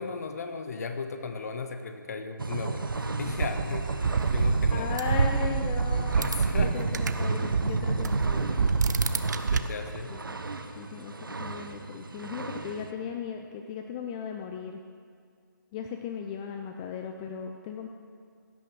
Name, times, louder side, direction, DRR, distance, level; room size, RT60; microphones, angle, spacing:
voice 1, 0.0-4.9 5.9-6.8 9.5-10.2, left 4 dB, 50° left, 7 dB, 1.3 m, -36 dB
sound 1, 2.4-12.9, right 3 dB, 85° right, 1.0 m, -32 dB
sound 2, 2.9-7.2 7.5-9.6, right 5 dB, 60° right, 0.7 m, -27 dB
voice 2, 4.7-8.7 10.1-10.4 10.8-14.8 15.7-17.9, left 7 dB, 15° left, 4 dB, 0.4 m, -37 dB
16.0 x 9.0 x 6.2 m, 2.1 s
figure-of-eight pair, 155°, 11 cm